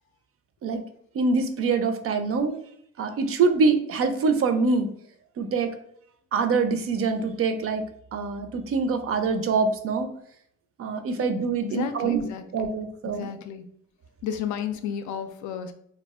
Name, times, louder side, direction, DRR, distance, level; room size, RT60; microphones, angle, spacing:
voice 1, 1.1-2.6 3.0-4.9 5.4-5.7 6.3-7.8 8.1-10.1 10.8-12.3 12.5-13.3, right 4 dB, 50° right, 8 dB, 0.4 m, -24 dB
voice 2, 11.6-12.4 13.0-13.7 14.2-15.7, left 8 dB, 75° left, 8 dB, 0.4 m, -32 dB
2.3 x 2.1 x 3.5 m, 0.69 s
cardioid pair, 90°, 30 cm